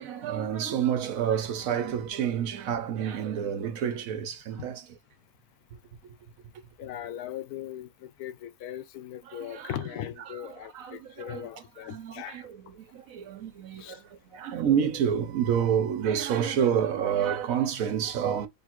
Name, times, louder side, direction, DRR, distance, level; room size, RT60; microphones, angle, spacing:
voice 1, 0.0-4.9 9.3-9.7 10.7-11.4 11.9-14.0 14.3-18.5, right 8 dB, 70° right, 1.1 m, -28 dB
voice 2, 6.8-12.5 13.8-14.0, left 11 dB, 90° left, 1.1 m, -39 dB
3.5 x 2.4 x 4.3 m
omnidirectional pair, 1.6 m